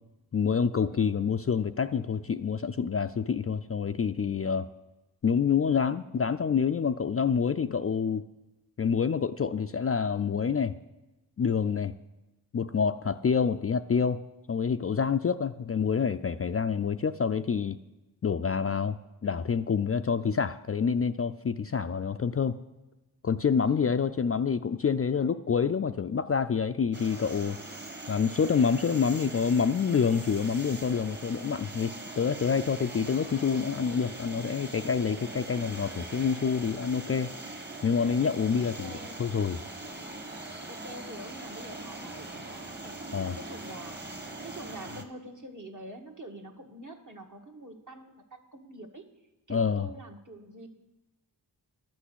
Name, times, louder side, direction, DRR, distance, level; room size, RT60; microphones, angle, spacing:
voice 1, 0.3-4.7 5.2-8.2 8.8-10.8 11.4-11.9 12.5-14.2 14.5-17.8 18.2-22.6 23.2-27.6 28.1-38.9 39.2-39.6 43.1-43.4 49.5-49.9, left 6 dB, 35° left, 9 dB, 0.4 m, -27 dB
voice 2, 0.9-1.2 20.0-20.4 23.6-23.9 38.8-39.2 40.7-43.9 44.4-49.0 49.5-50.7, right 1 dB, 45° right, 3 dB, 1.5 m, -46 dB
sound 1, 26.9-45.0, right 2 dB, 25° right, 1.4 m, -42 dB
12.0 x 6.1 x 8.1 m, 1.0 s
wide cardioid pair, 60°, 41 cm